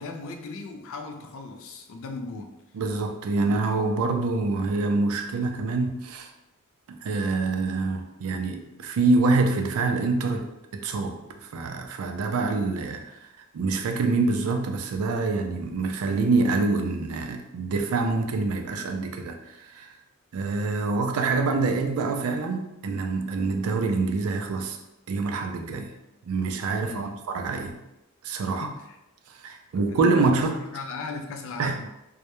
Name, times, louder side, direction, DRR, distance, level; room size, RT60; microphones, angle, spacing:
voice 1, 0.0-2.5 26.8-27.1 28.4-28.9 29.7-30.4 30.7-31.9, left 3 dB, 65° left, 5 dB, 0.4 m, -37 dB
voice 2, 2.7-6.3 6.9-13.3 13.5-19.9 20.3-24.8 25.1-25.9 26.3-27.8 28.2-28.7 29.4-30.6 31.6-31.9, right 3 dB, 70° right, 5 dB, 0.3 m, -26 dB
2.2 x 2.0 x 2.9 m, 0.91 s
head